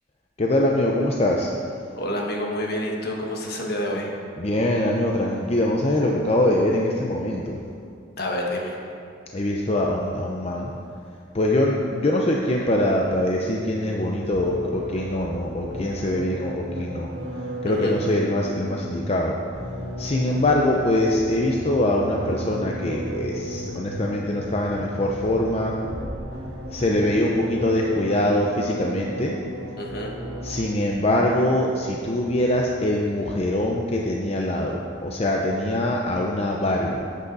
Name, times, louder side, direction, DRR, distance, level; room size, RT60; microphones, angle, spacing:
voice 1, 0.4-1.5 4.4-7.6 9.3-10.7 11.3-17.1 17.6-25.8 26.7-29.4 30.4-37.0, left 1 dB, 35° left, -1 dB, 0.7 m, -23 dB
voice 2, 2.0-4.1 8.2-8.8 17.7-18.0 29.8-30.1, left 1 dB, 60° left, 0 dB, 1.5 m, -28 dB
sound 1, 14.3-30.9, right 1 dB, 75° right, 1.8 m, -35 dB
sound 2, 25.8-27.6, equal, 10° right, 1.8 m, -39 dB
12.0 x 8.3 x 4.0 m, 2.4 s
head